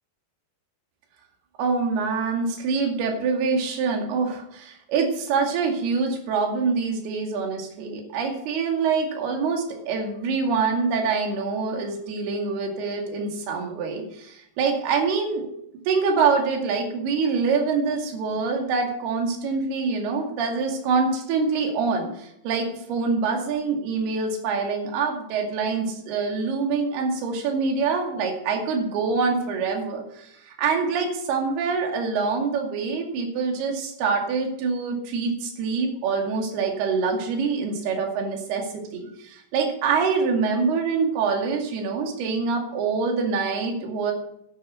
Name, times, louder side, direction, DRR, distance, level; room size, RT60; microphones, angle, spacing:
voice 1, 1.6-15.4 15.9-38.7 38.9-44.1, right 4 dB, 65° right, 2 dB, 4.1 m, -25 dB
11.5 x 9.2 x 8.2 m, 0.76 s
omnidirectional pair, 5.1 m